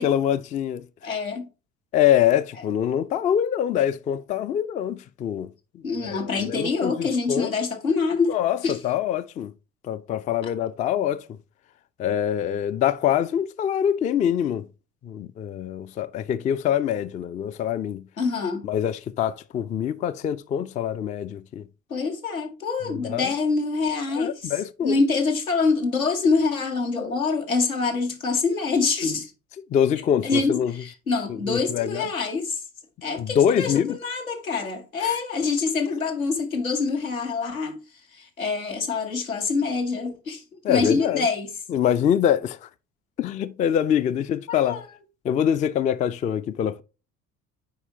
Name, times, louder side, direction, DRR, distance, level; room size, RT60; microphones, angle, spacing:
voice 1, 0.0-0.8 1.9-5.5 6.0-7.5 8.3-9.5 9.8-11.3 12.0-14.7 15.0-18.1 18.6-21.6 22.9-23.3 24.1-25.0 29.7-30.7 31.5-32.1 33.2-34.0 35.0-35.2 40.6-41.3 41.7-42.7 43.2-44.8 45.2-46.8, left 9 dB, 20° left, 0.3 m, -24 dB
voice 2, 1.0-1.5 5.8-8.3 8.6-8.8 10.4-10.5 18.2-18.6 21.9-24.5 24.8-29.3 30.2-32.6 33.0-37.8 38.1-41.5 44.5-44.8, left 4 dB, 85° left, 1.1 m, -25 dB
8.4 x 4.8 x 2.8 m
figure-of-eight pair, 55°, 40 cm